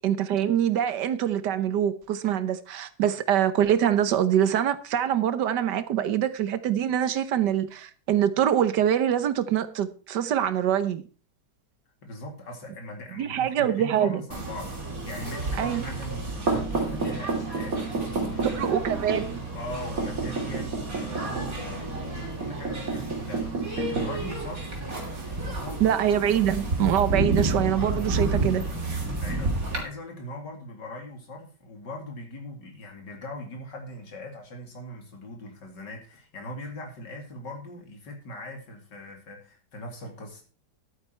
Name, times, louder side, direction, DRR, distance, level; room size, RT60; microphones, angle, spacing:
voice 1, 0.0-11.0 13.1-14.2 15.6-15.8 18.5-19.4 25.8-28.6, right 10 dB, 80° right, 1.5 m, -24 dB
voice 2, 12.0-18.8 19.3-24.7 25.2-25.8 29.0-40.4, left 1 dB, 85° left, 3.2 m, -40 dB
sound 1, 14.3-29.8, right 3 dB, 55° right, 3.4 m, -30 dB
11.0 x 9.2 x 4.5 m
omnidirectional pair, 1.8 m